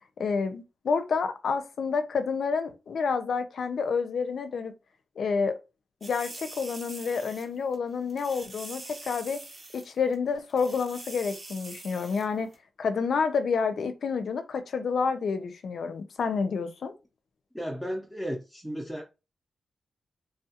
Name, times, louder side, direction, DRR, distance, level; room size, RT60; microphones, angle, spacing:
voice 1, 0.2-4.7 5.2-5.6 6.0-9.4 9.7-12.5 12.8-16.9, left 5 dB, 70° left, 0.5 m, -29 dB
sound 1, 6.0-7.5 7.7-7.8 8.1-9.9 10.1-10.2 10.5-12.3 12.5-12.6, right 2 dB, 35° right, 0.8 m, -44 dB
voice 2, 17.5-19.0, equal, ahead, 0.6 m, -34 dB
3.3 x 2.3 x 2.8 m
wide cardioid pair, 150°, 0 cm